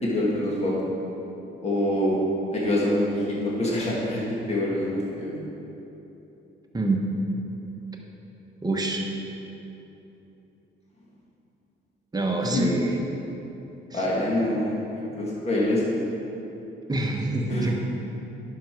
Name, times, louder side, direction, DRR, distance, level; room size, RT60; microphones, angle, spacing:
voice 1, 0.0-0.8 1.6-2.2 2.5-5.3 12.4-12.6 13.9-15.8 17.5-17.7, left 1 dB, 30° left, -5 dB, 2.0 m, -25 dB
voice 2, 8.6-9.0 12.1-13.0 13.9-14.0 16.9-17.7, right 2 dB, 20° right, 0 dB, 1.2 m, -26 dB
10.5 x 5.8 x 4.7 m, 3.0 s
cardioid pair, 90°, 20 cm